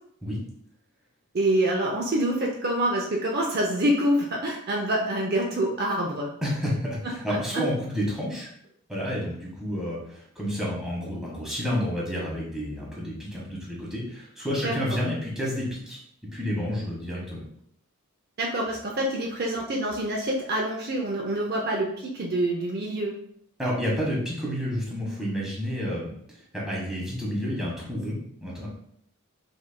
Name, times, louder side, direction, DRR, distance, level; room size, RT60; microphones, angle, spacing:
voice 1, 1.3-6.3 14.6-14.7 18.4-23.2, right 1 dB, 45° right, -1 dB, 0.6 m, -26 dB
voice 2, 6.4-8.5 8.9-16.0 16.3-17.4 23.6-28.7, equal, ahead, -5 dB, 1.3 m, -30 dB
5.1 x 4.0 x 2.2 m, 0.68 s
head